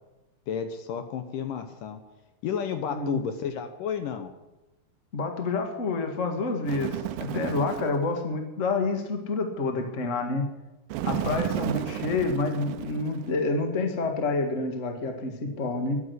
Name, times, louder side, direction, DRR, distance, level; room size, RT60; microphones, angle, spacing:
voice 1, 0.5-2.0 2.4-4.3, left 7 dB, 70° left, 8 dB, 2.1 m, -31 dB
voice 2, 2.9-3.2 5.1-10.5 11.0-16.0, left 3 dB, 90° left, 5 dB, 0.6 m, -28 dB
Bird, 6.6-8.0 10.9-13.4, right 12 dB, 80° right, 2.2 m, -33 dB
13.5 x 11.0 x 8.2 m, 1.0 s
omnidirectional pair, 4.8 m